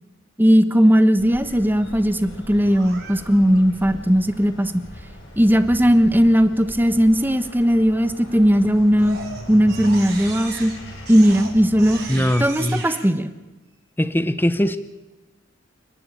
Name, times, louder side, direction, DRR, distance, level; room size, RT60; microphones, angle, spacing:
voice 1, 0.4-4.8 5.4-9.2 9.5-10.7 11.1-13.3, equal, 10° right, 10 dB, 1.1 m, -17 dB
sound 1, 1.2-12.5, left 1 dB, 60° left, 6.5 m, -39 dB
Crying sobbing, 2.6-3.6 8.3-8.6 9.0-13.1, right 5 dB, 55° right, 5.5 m, -37 dB
voice 2, 12.1-12.8 14.0-14.8, equal, 10° left, 11 dB, 0.8 m, -21 dB
30.0 x 11.5 x 9.1 m, 1.1 s
head